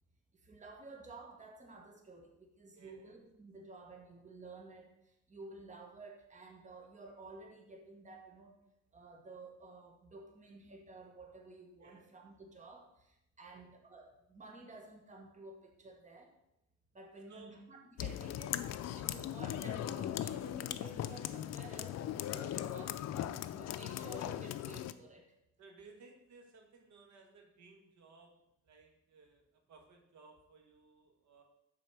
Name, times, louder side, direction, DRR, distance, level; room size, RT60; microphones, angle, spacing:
voice 1, 0.4-4.9 5.3-8.6 8.9-16.3 16.9-18.6 18.9-23.1 23.6-25.3, right 3 dB, 25° right, 2 dB, 1.3 m, -53 dB
voice 2, 2.7-3.1 11.8-12.1 13.5-13.7 17.3-17.6 22.6-22.9 23.6-23.7 25.6-28.3 28.6-31.4, right 4 dB, 70° right, 3 dB, 1.4 m, -59 dB
sound 1, 18.0-24.9, left 11 dB, 60° left, 0.4 m, -39 dB
6.2 x 4.2 x 5.9 m, 0.82 s
cardioid pair, 90°, 30 cm